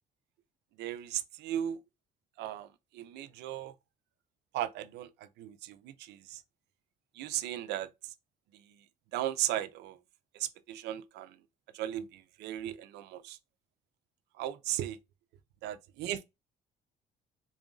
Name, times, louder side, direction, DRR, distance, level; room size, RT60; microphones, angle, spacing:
voice 1, 0.8-1.8 2.4-2.7 2.9-3.7 4.5-5.1 5.4-6.4 7.2-7.9 9.1-10.0 10.4-11.3 11.7-13.4 14.4-15.0 15.6-16.2, right 12 dB, 80° right, 0.5 m, -36 dB
3.9 x 2.5 x 3.7 m
cardioid pair, 110°, 17 cm